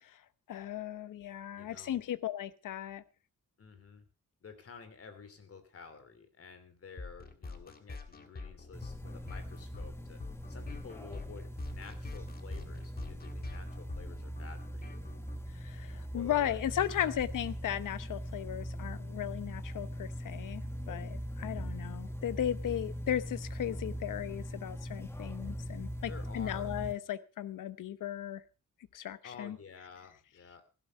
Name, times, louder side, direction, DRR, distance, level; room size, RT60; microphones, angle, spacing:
voice 1, 0.5-3.0 15.5-28.4 28.9-29.6, left 11 dB, 80° left, 15 dB, 0.9 m, -36 dB
voice 2, 1.5-2.0 3.6-4.0 4.4-15.1 16.1-16.6 16.9-17.1 22.6-22.8 26.1-26.7 29.2-30.6, left 5 dB, 45° left, 10 dB, 3.0 m, -51 dB
sound 1, 7.0-15.4, left 3 dB, 30° left, 1.8 m, -46 dB
sound 2, 8.7-26.9, equal, 10° left, 1.6 m, -41 dB
16.0 x 12.0 x 4.6 m, 0.33 s
wide cardioid pair, 155°, 31 cm